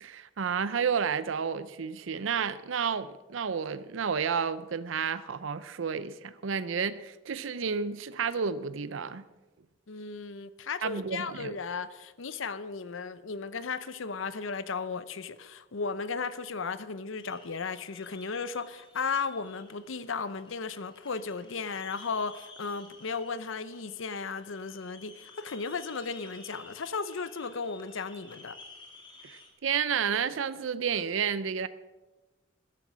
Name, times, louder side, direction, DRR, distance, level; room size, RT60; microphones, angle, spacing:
voice 1, 0.0-9.2 10.8-11.6 29.2-31.7, right 6 dB, 75° right, 0.5 m, -31 dB
voice 2, 9.9-28.6, left 5 dB, 80° left, 0.7 m, -35 dB
sound 1, 17.2-29.5, left 3 dB, 25° left, 1.9 m, -53 dB
13.5 x 10.5 x 6.1 m
head